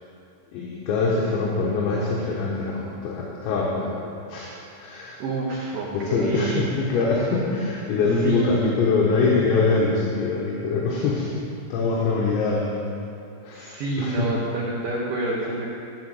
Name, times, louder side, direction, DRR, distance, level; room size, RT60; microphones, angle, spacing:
voice 1, 0.5-4.0 4.3-5.2 5.9-11.4 11.7-12.7 13.4-14.3, left 3 dB, 75° left, -4 dB, 3.3 m, -24 dB
voice 2, 5.2-6.7 8.2-8.8 13.5-15.7, right 3 dB, 80° right, -4 dB, 1.9 m, -28 dB
13.5 x 4.5 x 7.8 m, 2.7 s
omnidirectional pair, 5.4 m